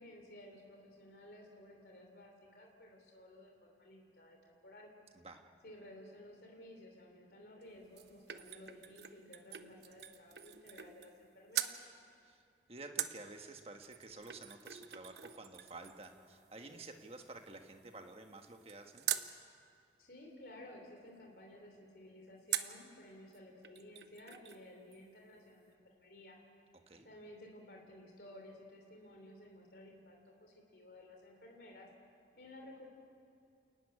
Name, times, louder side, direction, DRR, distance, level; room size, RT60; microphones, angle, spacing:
voice 1, 0.0-4.9 5.6-11.7 20.0-26.4 27.0-31.9 32.3-32.9, left 1 dB, 60° left, 2 dB, 3.1 m, -55 dB
sound 1, 7.6-11.2 11.5-11.8 13.0-19.3 22.5-22.9 23.3-23.4 23.6-24.6 24.9-25.0, right 11 dB, 70° right, 0.9 m, -43 dB
voice 2, 12.7-19.1 26.9-27.1, right 3 dB, 35° right, 5 dB, 1.4 m, -51 dB
29.0 x 13.5 x 9.8 m, 2.6 s
head